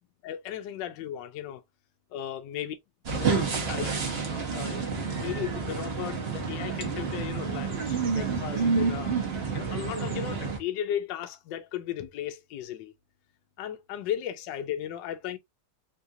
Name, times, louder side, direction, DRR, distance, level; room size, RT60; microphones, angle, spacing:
voice 1, 0.2-1.6 2.1-2.8 3.1-3.3 3.7-4.9 5.2-9.2 9.5-12.9 13.6-15.4, left 10 dB, 75° left, 1.1 m, -36 dB
sound 1, 3.0-10.6, right 5 dB, 50° right, 0.7 m, -29 dB
3.7 x 2.4 x 2.7 m
omnidirectional pair, 2.4 m